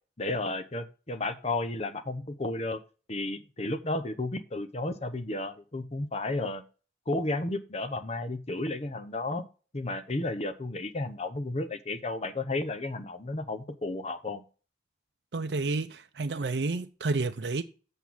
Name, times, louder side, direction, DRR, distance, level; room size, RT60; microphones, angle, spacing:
voice 1, 0.2-2.8 3.1-6.6 7.1-9.4 9.7-14.4, left 2 dB, 35° left, 0.9 m, -33 dB
voice 2, 15.3-17.6, right 3 dB, 65° right, 0.6 m, -30 dB
8.3 x 5.5 x 6.0 m
head